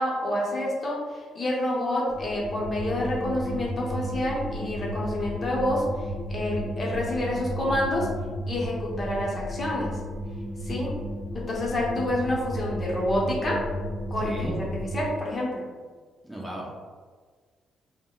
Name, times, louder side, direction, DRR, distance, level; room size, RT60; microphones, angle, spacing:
voice 1, 0.0-8.1 8.5-10.0 10.6-10.9 11.3-13.6 14.1-15.6, left 1 dB, 35° left, -3 dB, 0.8 m, -28 dB
sound 1, 2.1-15.1, equal, 85° left, 0.7 m, -33 dB
voice 2, 14.2-14.5 16.2-16.9, right 1 dB, 5° right, -3 dB, 0.5 m, -35 dB
3.5 x 2.1 x 2.3 m, 1.5 s
cardioid pair, 90°, 0 cm